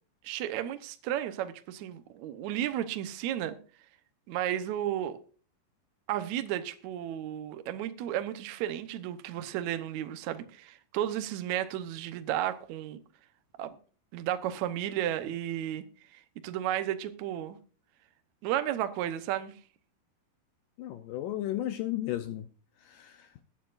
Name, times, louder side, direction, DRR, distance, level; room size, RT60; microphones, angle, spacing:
voice 1, 0.2-3.6 4.3-5.2 6.1-13.0 13.6-13.7 14.1-15.8 16.1-17.6 18.4-19.6, right 11 dB, 75° right, 1.7 m, -33 dB
voice 2, 20.8-22.5 22.8-23.3, left 13 dB, 80° left, 2.0 m, -34 dB
21.5 x 9.2 x 2.5 m
omnidirectional pair, 4.7 m